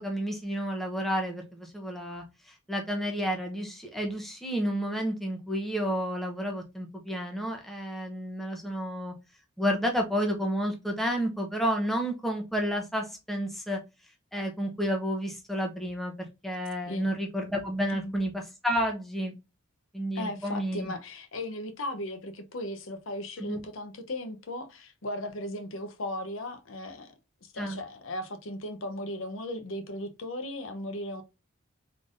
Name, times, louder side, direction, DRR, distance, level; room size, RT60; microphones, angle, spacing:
voice 1, 0.0-2.2 2.7-9.1 9.6-13.8 14.3-19.3 19.9-20.9 23.4-23.6 27.6-27.8, equal, ahead, 0.8 m, -31 dB
voice 2, 20.1-27.1 27.4-31.2, left 1 dB, 70° left, 0.8 m, -37 dB
3.9 x 3.4 x 2.5 m
head